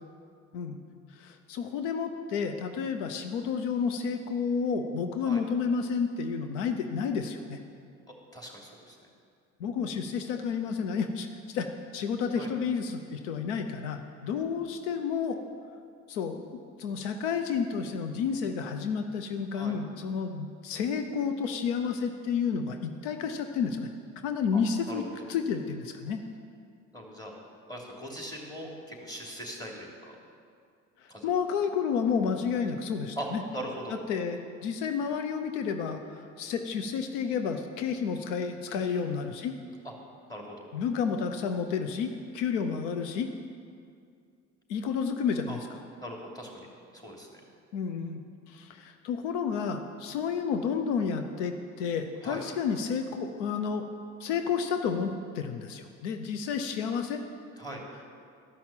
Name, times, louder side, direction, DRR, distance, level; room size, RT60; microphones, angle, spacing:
voice 1, 1.2-7.6 9.6-11.7 11.9-15.4 16.1-16.4 16.8-23.9 24.2-25.0 25.3-26.2 31.2-33.4 34.1-39.5 40.7-43.3 44.7-45.6 47.7-53.8 54.2-57.2, left 6 dB, 85° left, 7 dB, 0.7 m, -31 dB
voice 2, 8.1-9.0 12.3-12.5 19.5-19.7 24.5-24.6 24.9-25.0 26.9-27.3 27.7-30.2 31.1-31.3 33.2-33.3 33.5-34.0 38.7-39.0 40.3-40.6 45.5-45.6 46.0-46.7 46.9-47.4 52.2-52.4 57.6-57.8, equal, 10° left, -1 dB, 3.0 m, -40 dB
13.0 x 5.9 x 7.4 m, 2.3 s
hypercardioid pair, 60°, 36 cm